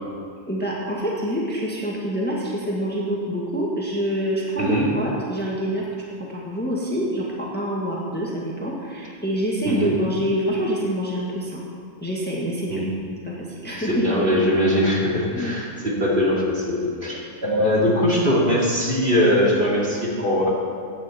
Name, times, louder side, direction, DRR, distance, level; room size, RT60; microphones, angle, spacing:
voice 1, 0.5-5.9 6.2-7.3 7.5-11.6 12.0-12.8 13.2-13.4 13.6-14.2 15.3-15.6 17.6-17.8, equal, 5° left, -4 dB, 1.7 m, -26 dB
voice 2, 4.6-5.0 9.6-10.0 12.7-12.9 13.8-20.5, equal, 40° right, -4 dB, 2.7 m, -21 dB
16.0 x 10.0 x 4.4 m, 2.2 s
omnidirectional pair, 1.4 m